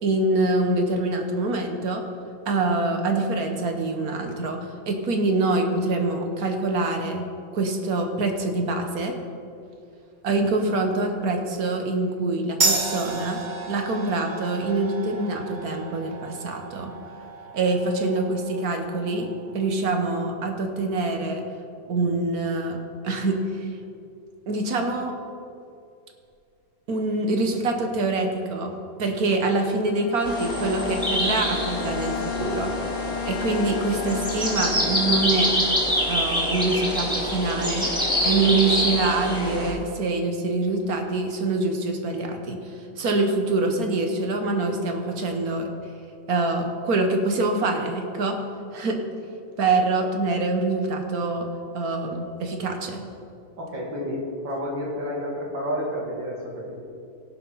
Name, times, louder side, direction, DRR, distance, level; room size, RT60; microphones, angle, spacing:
voice 1, 0.0-2.0 2.5-7.3 7.5-9.1 10.2-13.4 13.7-16.9 17.5-21.4 21.9-22.8 23.0-23.7 24.5-25.2 26.9-32.7 33.2-35.5 36.1-37.9 38.2-42.7 43.0-45.7 46.3-48.4 48.7-49.0 49.6-51.5 51.7-53.0, right 2 dB, 55° right, 4 dB, 1.4 m, -25 dB
sound 1, 12.6-19.7, right 3 dB, 35° right, 0.7 m, -31 dB
Bowed string instrument, 29.8-35.9, left 10 dB, 90° left, 1.3 m, -34 dB
sound 2, 30.2-39.7, equal, ahead, 2.3 m, -26 dB
voice 2, 53.6-56.8, equal, 75° right, -3 dB, 3.0 m, -30 dB
16.5 x 5.7 x 5.7 m, 2.5 s
omnidirectional pair, 2.1 m